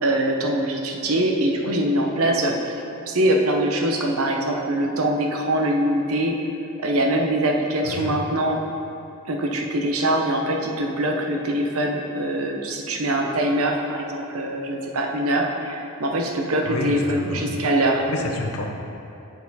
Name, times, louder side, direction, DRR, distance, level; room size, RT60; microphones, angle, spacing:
voice 1, 0.0-2.7 3.1-6.4 6.8-8.6 9.3-18.0, right 1 dB, 80° right, 2 dB, 0.8 m, -23 dB
voice 2, 7.8-8.2 16.6-17.6 18.1-18.7, left 2 dB, 70° left, 2 dB, 0.7 m, -29 dB
8.2 x 4.5 x 4.0 m, 2.8 s
head